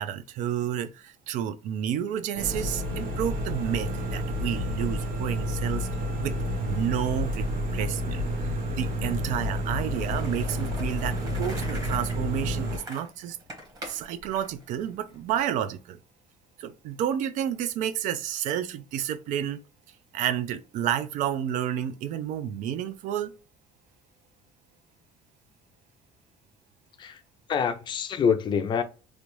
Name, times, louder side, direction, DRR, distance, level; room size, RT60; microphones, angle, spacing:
voice 1, 0.0-5.9 6.2-7.5 7.7-8.3 8.7-13.4 13.9-16.0 16.6-19.6 20.1-23.3, right 10 dB, 65° right, 0.4 m, -30 dB
sound 1, 2.3-12.8, equal, 80° right, 1.0 m, -30 dB
Skateboard, 9.9-15.4, equal, 25° right, 1.2 m, -42 dB
voice 2, 27.5-28.8, left 6 dB, 35° left, 0.4 m, -25 dB
3.3 x 2.5 x 3.0 m
cardioid pair, 155°, 14 cm